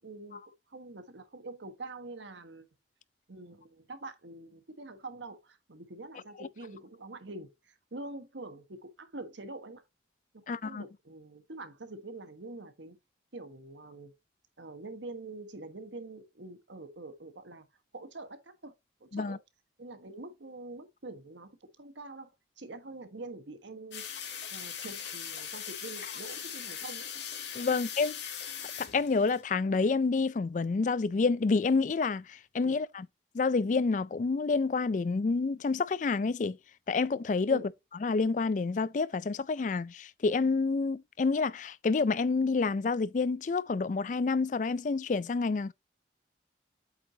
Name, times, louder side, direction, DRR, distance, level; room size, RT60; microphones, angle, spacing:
voice 1, 0.0-2.7 3.3-9.8 10.3-13.0 13.3-14.1 14.6-17.7 17.9-18.7 19.0-19.4 19.8-27.1 27.7-27.8 32.6-32.7 37.5-37.7, right 2 dB, 80° right, 1.4 m, -45 dB
voice 2, 10.5-10.8 19.1-19.4 27.5-28.3 28.8-33.1 33.3-36.6 36.9-37.6 38.0-45.7, left 4 dB, 40° left, 0.3 m, -28 dB
sound 1, 23.9-29.4, left 8 dB, 75° left, 2.2 m, -40 dB
8.2 x 5.9 x 2.8 m
head